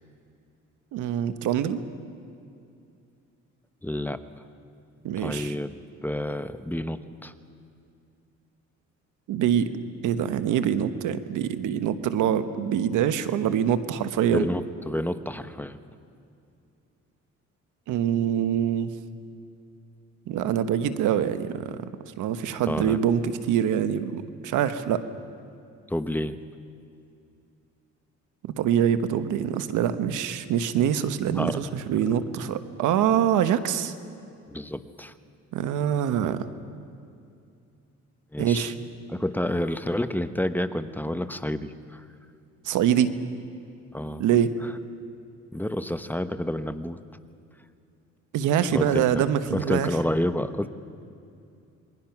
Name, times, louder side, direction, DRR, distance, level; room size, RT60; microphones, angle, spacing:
voice 1, 0.9-1.8 5.0-5.5 9.3-9.7 10.0-14.5 17.9-18.9 20.3-21.9 22.2-25.0 28.4-33.9 35.5-36.5 38.4-38.7 42.6-43.1 44.2-44.5 48.3-49.9, right 9 dB, 90° right, 11 dB, 1.1 m, -24 dB
voice 2, 3.8-4.2 5.2-7.3 14.3-15.8 22.6-23.0 25.9-26.4 31.3-31.6 34.5-35.1 38.3-38.7 39.1-42.1 43.9-44.2 44.6-44.7 45.5-47.0 48.7-49.2 49.5-50.7, left 1 dB, 5° left, 10 dB, 0.9 m, -29 dB
27.5 x 22.0 x 6.0 m, 2.5 s
cardioid pair, 90°, 30 cm